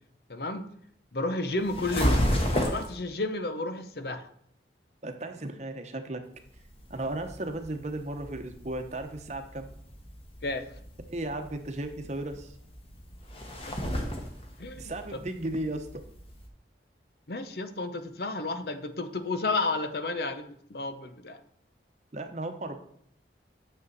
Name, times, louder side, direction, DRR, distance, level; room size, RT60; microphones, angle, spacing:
voice 1, 0.3-0.7 1.1-2.2 2.6-4.3 10.4-10.7 14.6-14.8 15.1-15.2 17.3-21.4, left 2 dB, 60° left, 9 dB, 0.8 m, -32 dB
sound 1, 1.6-2.9 6.4-16.5, equal, 30° left, 1.4 m, -33 dB
voice 2, 5.0-6.3 6.9-9.7 11.1-12.5 14.8-16.0 22.1-22.8, right 1 dB, 40° right, 6 dB, 0.9 m, -35 dB
9.3 x 6.9 x 4.1 m, 0.67 s
head